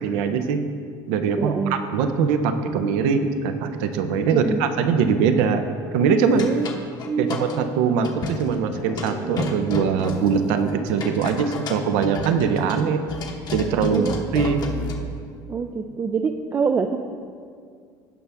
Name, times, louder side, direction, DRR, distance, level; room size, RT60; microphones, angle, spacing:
voice 1, 0.0-0.7 1.1-5.6 5.9-6.5 7.2-13.0 13.5-14.1 14.3-14.6, right 6 dB, 80° right, 8 dB, 0.7 m, -22 dB
voice 2, 1.4-1.8 4.3-4.6 6.4-6.6 7.0-7.4 13.9-14.1 14.7-14.8 15.5-17.0, right 5 dB, 25° right, 5 dB, 0.4 m, -25 dB
sound 1, 6.3-7.6 8.0-8.6 9.0-15.1, left 3 dB, 40° left, 1.1 m, -31 dB
sound 2, 8.7-13.3, equal, 70° left, 2.7 m, -39 dB
16.5 x 5.7 x 3.5 m, 2.2 s
supercardioid pair, 115°, 10 cm